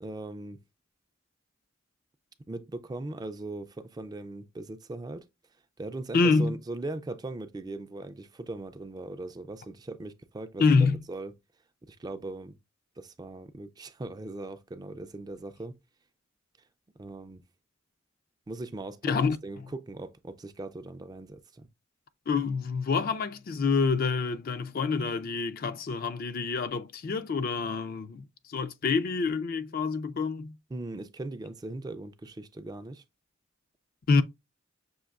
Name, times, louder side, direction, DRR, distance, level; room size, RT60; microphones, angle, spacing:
voice 1, 0.0-0.6 2.5-5.2 5.8-11.3 11.9-12.6 13.0-15.8 17.0-17.4 18.5-19.1 19.4-21.7 30.7-33.0, right 2 dB, 20° right, 0.3 m, -39 dB
voice 2, 6.1-6.5 10.6-11.0 19.0-19.4 22.3-30.5 34.1-34.2, left 4 dB, 50° left, 0.4 m, -27 dB
6.2 x 2.5 x 2.4 m
head